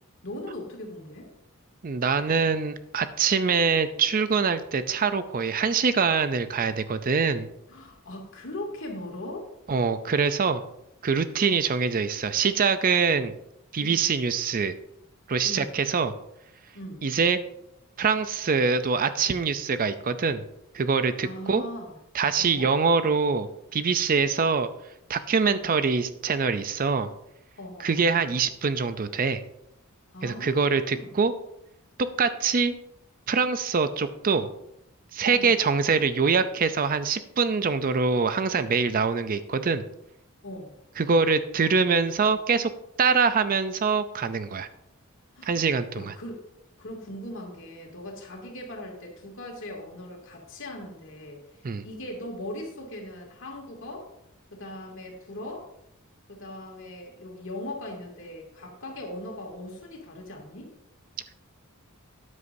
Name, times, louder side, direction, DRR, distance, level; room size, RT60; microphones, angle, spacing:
voice 1, 0.2-1.3 7.7-9.5 13.8-14.0 15.4-15.7 16.7-17.0 21.2-22.0 22.4-22.7 25.4-25.6 27.6-27.9 30.1-31.2 35.3-35.5 40.4-40.7 45.3-45.7 45.9-46.4 46.8-54.1 54.5-55.7 56.3-60.7, left 1 dB, 60° left, 0 dB, 2.5 m, -39 dB
voice 2, 1.8-7.5 9.7-10.6 11.0-13.3 13.7-14.7 15.3-16.1 17.0-17.4 18.0-20.4 20.7-21.6 22.1-24.7 25.1-27.1 27.8-29.4 30.2-31.3 32.2-32.7 33.3-34.5 35.1-39.8 41.0-42.7 43.0-44.7 45.4-46.1 51.6-51.8, right 5 dB, 40° right, 12 dB, 0.5 m, -24 dB
13.0 x 9.6 x 2.7 m, 0.81 s
head